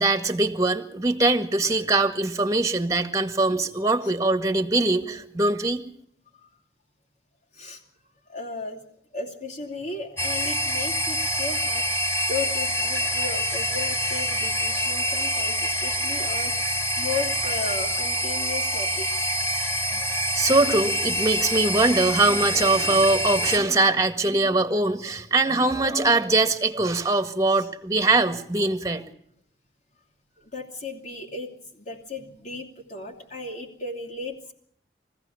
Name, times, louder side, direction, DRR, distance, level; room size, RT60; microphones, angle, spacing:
voice 1, 0.0-5.8 19.9-20.0 20.3-29.1, right 2 dB, 20° right, 9 dB, 1.9 m, -22 dB
voice 2, 8.3-8.8 9.1-11.9 12.3-19.2 27.6-27.7 30.4-34.5, left 3 dB, 45° left, -1 dB, 3.0 m, -35 dB
sound 1, 10.2-23.6, equal, 15° left, 2.9 m, -26 dB
23.5 x 16.0 x 7.2 m, 0.66 s
head